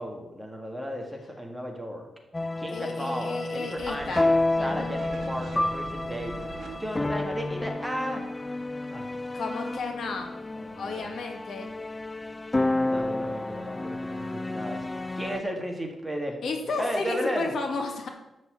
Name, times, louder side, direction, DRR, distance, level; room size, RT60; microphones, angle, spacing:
voice 1, 0.0-2.1 2.6-6.4 6.8-8.2 8.9-9.2 10.5-11.1 12.9-14.9 15.1-16.4 16.6-17.5, equal, 5° right, 1 dB, 1.7 m, -34 dB
sound 1, 2.3-15.4, left 2 dB, 20° left, 0.3 m, -30 dB
voice 2, 2.7-4.3 4.6-4.9 9.3-10.3 10.7-11.7 16.4-18.1, left 3 dB, 65° left, 3 dB, 1.8 m, -32 dB
sound 2, 3.8-7.8, right 4 dB, 60° right, 1.4 m, -44 dB
12.5 x 4.2 x 8.2 m, 0.98 s
wide cardioid pair, 145°, 0 cm